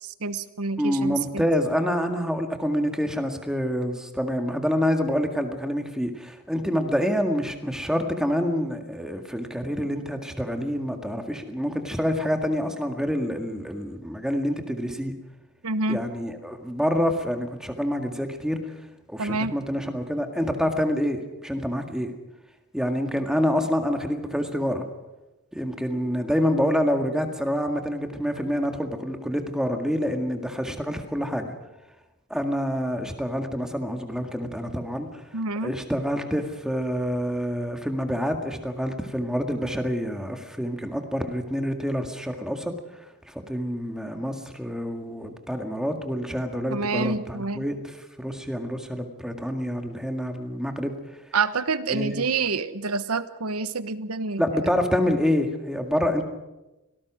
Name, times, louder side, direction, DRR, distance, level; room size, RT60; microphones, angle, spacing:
voice 1, 0.0-1.5 15.6-16.0 19.2-19.6 35.3-35.8 46.7-47.6 51.3-54.6, right 4 dB, 85° right, 13 dB, 1.1 m, -27 dB
voice 2, 0.8-15.1 15.9-18.6 19.1-22.1 22.7-24.8 25.5-31.5 32.3-35.1 35.6-42.7 43.3-47.8 48.2-50.9 51.9-52.2 54.4-56.2, equal, 5° right, 5 dB, 1.9 m, -27 dB
24.5 x 18.5 x 6.2 m, 1.0 s
head